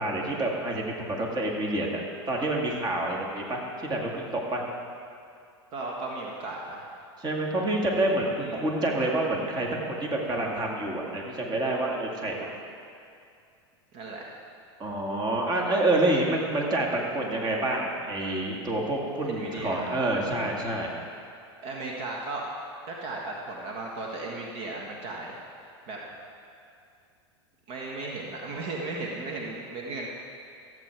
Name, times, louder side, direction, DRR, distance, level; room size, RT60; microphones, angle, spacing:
voice 1, 0.0-4.6 7.2-12.5 14.8-20.9, right 2 dB, 30° right, -1 dB, 2.1 m, -28 dB
voice 2, 5.7-6.9 8.4-8.7 13.9-14.2 19.2-20.0 21.6-22.4 22.9-25.3 25.9-26.0 27.7-30.1, right 2 dB, 55° right, -1 dB, 1.5 m, -36 dB
14.0 x 8.3 x 4.6 m, 2.4 s
hypercardioid pair, 100°, 15 cm